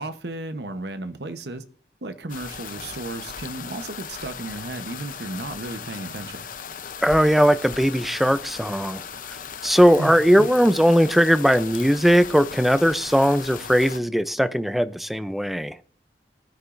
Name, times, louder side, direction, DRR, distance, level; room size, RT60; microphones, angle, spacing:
voice 1, 0.0-1.6 2.0-6.5 10.0-10.5, right 2 dB, 70° right, 1.0 m, -34 dB
sound 1, 2.3-14.0, left 7 dB, 50° left, 0.7 m, -37 dB
voice 2, 7.0-9.0 9.6-15.8, equal, ahead, 0.5 m, -19 dB
20.0 x 10.0 x 2.6 m
head